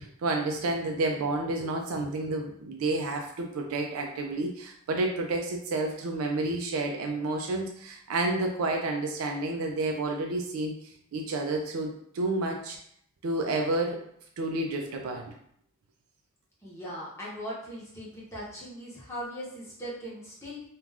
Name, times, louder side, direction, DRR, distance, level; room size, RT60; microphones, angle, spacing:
voice 1, 0.0-10.8 11.1-12.8 13.2-14.0 14.4-15.3, right 2 dB, 85° right, 2 dB, 0.4 m, -30 dB
voice 2, 16.6-20.6, equal, 15° left, -7 dB, 0.8 m, -39 dB
2.4 x 2.3 x 3.3 m, 0.67 s
head